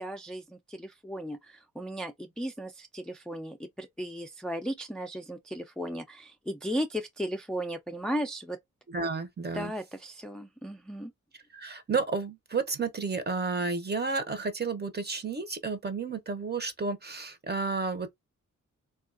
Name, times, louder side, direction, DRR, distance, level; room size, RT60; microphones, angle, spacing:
voice 1, 0.0-8.6 9.5-11.1, equal, 5° left, 0.3 m, -36 dB
voice 2, 8.9-9.7 11.5-18.2, right 4 dB, 35° right, 0.7 m, -31 dB
3.5 x 2.3 x 2.4 m
wide cardioid pair, 105°, 31 cm